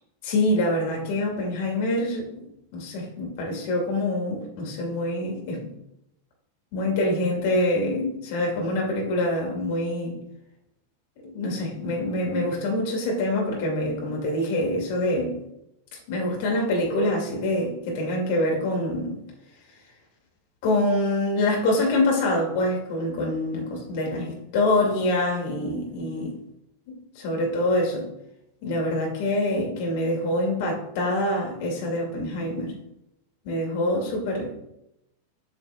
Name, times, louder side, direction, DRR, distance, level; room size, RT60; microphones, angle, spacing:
voice 1, 0.2-2.4 2.7-5.7 6.7-10.2 11.3-15.3 16.1-19.2 20.6-26.3 27.2-28.1 28.6-32.7 33.4-34.5, left 1 dB, 50° left, 0 dB, 2.2 m, -25 dB
7.9 x 5.8 x 2.3 m, 0.84 s
figure-of-eight pair, 90°, 0 cm